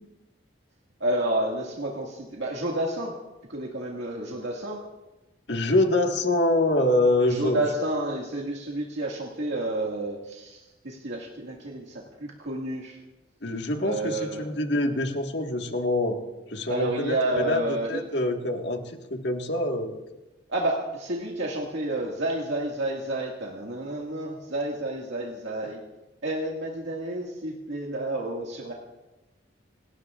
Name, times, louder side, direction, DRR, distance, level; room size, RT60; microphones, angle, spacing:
voice 1, 1.0-3.2 3.5-4.8 7.2-13.0 13.8-14.5 16.7-18.0 20.5-25.8 26.2-28.7, right 1 dB, 80° right, -3 dB, 2.0 m, -30 dB
voice 2, 5.5-7.6 13.4-16.2 16.5-17.6 17.9-19.9, left 1 dB, 70° left, 3 dB, 1.6 m, -25 dB
27.5 x 20.0 x 2.5 m, 1.0 s
head